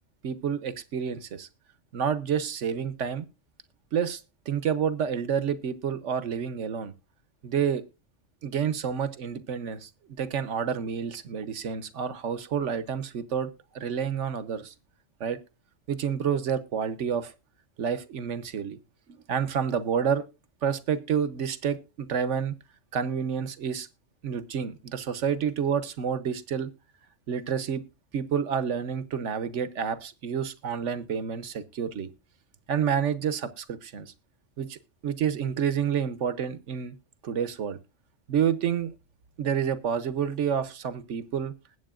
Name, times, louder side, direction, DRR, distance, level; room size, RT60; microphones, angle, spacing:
voice 1, 0.2-1.5 1.9-3.3 3.9-4.2 4.5-6.9 7.4-7.8 8.4-13.5 13.7-14.7 15.2-15.4 15.9-17.3 17.8-18.8 19.1-20.2 20.6-22.5 22.9-23.9 24.2-26.7 27.3-27.8 28.1-32.1 32.7-34.1 34.6-37.0 37.2-37.8 38.3-38.9 39.4-41.5, right 7 dB, 70° right, 1.2 m, -29 dB
20.0 x 8.3 x 2.4 m
omnidirectional pair, 1.3 m